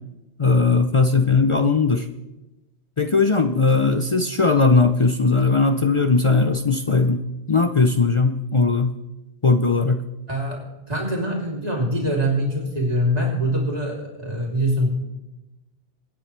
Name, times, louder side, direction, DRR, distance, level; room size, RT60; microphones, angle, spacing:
voice 1, 0.4-2.1 3.0-7.2 7.5-8.9 9.4-10.0, left 4 dB, 40° left, 8 dB, 0.5 m, -18 dB
voice 2, 10.3-14.9, equal, 40° right, -2 dB, 3.3 m, -24 dB
22.5 x 9.5 x 3.3 m, 1.0 s
omnidirectional pair, 1.0 m